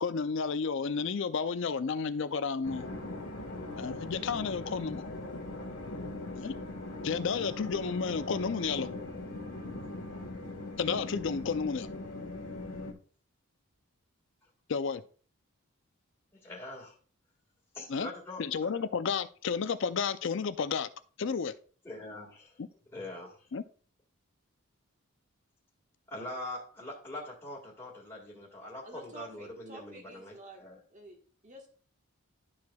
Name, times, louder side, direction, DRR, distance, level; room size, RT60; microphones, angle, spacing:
voice 1, 0.0-2.9 3.8-5.1 6.4-6.5 7.0-8.9 10.8-11.9 14.7-15.0 17.9-18.1 18.4-20.9 21.2-21.5 22.6-22.7 23.5-23.6, left 5 dB, 55° left, 0.4 m, -32 dB
sound 1, 2.6-12.9, left 2 dB, 85° left, 1.5 m, -40 dB
voice 2, 16.4-16.9 17.7-18.9 21.8-22.5 22.9-23.5 26.1-30.8, left 1 dB, 10° left, 1.8 m, -43 dB
voice 3, 28.8-30.6 30.9-31.2 31.4-31.7, right 2 dB, 35° right, 1.4 m, -48 dB
12.0 x 4.7 x 2.3 m
head